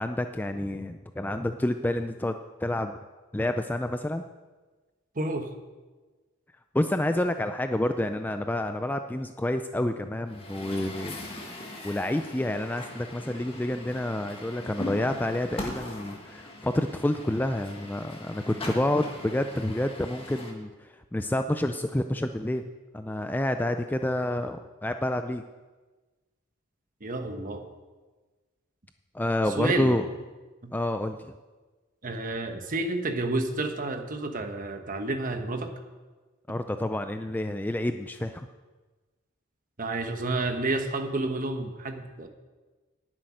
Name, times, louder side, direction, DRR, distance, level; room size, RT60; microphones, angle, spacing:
voice 1, 0.0-2.4 2.6-3.0 3.3-4.2 6.7-11.2 11.8-25.4 29.1-30.1 30.7-31.2 36.5-38.5, left 1 dB, 10° left, 8 dB, 0.3 m, -29 dB
voice 2, 5.1-5.5 27.0-27.6 29.6-30.0 30.6-30.7 32.0-35.7 39.8-42.3, right 2 dB, 35° right, 7 dB, 1.1 m, -30 dB
Truck, 10.3-20.5, left 2 dB, 25° left, 1.7 m, -40 dB
10.5 x 7.6 x 9.6 m, 1.3 s
head